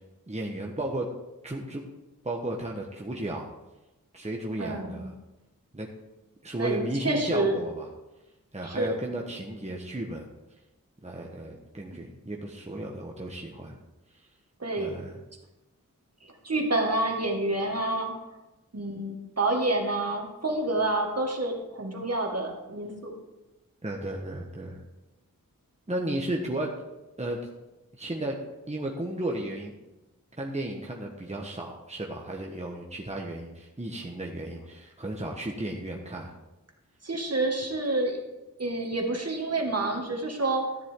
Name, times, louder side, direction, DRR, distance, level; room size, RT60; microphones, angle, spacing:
voice 1, 0.3-1.1 1.4-1.8 2.2-3.5 4.1-5.1 5.7-5.9 6.4-7.9 8.5-10.3 11.0-13.7 14.2-14.3 14.8-15.2 23.8-24.8 25.9-26.7 27.2-27.4 28.0-28.4 28.7-29.8 30.3-36.3, right 1 dB, 20° right, -1 dB, 1.3 m, -34 dB
voice 2, 4.6-5.1 6.6-7.6 8.6-8.9 14.6-14.9 16.2-18.1 18.7-23.1 37.0-38.2 38.6-40.7, right 2 dB, 45° right, 1 dB, 2.1 m, -28 dB
13.0 x 7.4 x 3.8 m, 1.0 s
cardioid pair, 45°, 34 cm